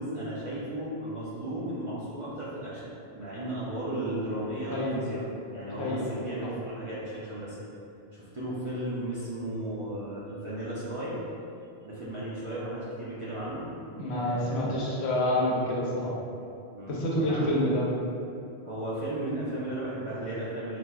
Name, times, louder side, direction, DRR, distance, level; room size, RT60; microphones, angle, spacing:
voice 1, 0.0-5.2 5.5-7.6 8.1-11.2 11.8-13.7 14.1-14.9 16.7-17.5 18.6-20.8, right 1 dB, 45° right, -10 dB, 0.4 m, -35 dB
voice 2, 4.7-5.0 5.8-6.1 14.0-16.1 16.9-17.9, left 1 dB, 85° left, -4 dB, 0.9 m, -28 dB
4.1 x 2.1 x 2.3 m, 2.6 s
omnidirectional pair, 1.1 m